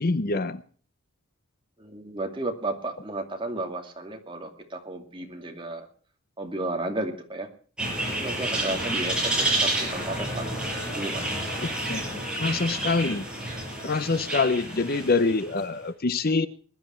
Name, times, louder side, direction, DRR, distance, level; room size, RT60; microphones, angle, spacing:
voice 1, 0.0-0.6 8.7-8.8 11.6-12.0 12.4-13.2 13.8-16.5, left 3 dB, 45° left, 13 dB, 0.8 m, -25 dB
voice 2, 1.8-5.9 6.4-7.5 8.1-10.4 10.9-11.2 14.8-15.0, right 2 dB, 25° right, 3 dB, 2.5 m, -33 dB
sound 1, 7.8-15.6, right 1 dB, 5° right, 6.4 m, -29 dB
21.5 x 11.5 x 4.5 m, 0.43 s
head